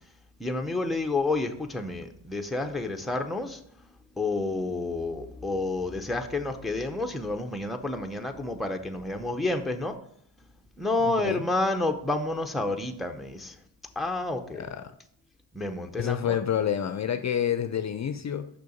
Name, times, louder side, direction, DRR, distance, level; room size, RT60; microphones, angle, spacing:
voice 1, 0.4-3.6 4.2-10.0 10.8-13.6 14.0-14.6 15.5-16.4, left 2 dB, ahead, 4 dB, 0.6 m, -29 dB
voice 2, 11.1-11.5 14.5-14.9 16.0-18.5, left 9 dB, 40° left, 10 dB, 0.5 m, -28 dB
6.7 x 5.7 x 5.3 m, 0.67 s
cardioid pair, 125°, 43 cm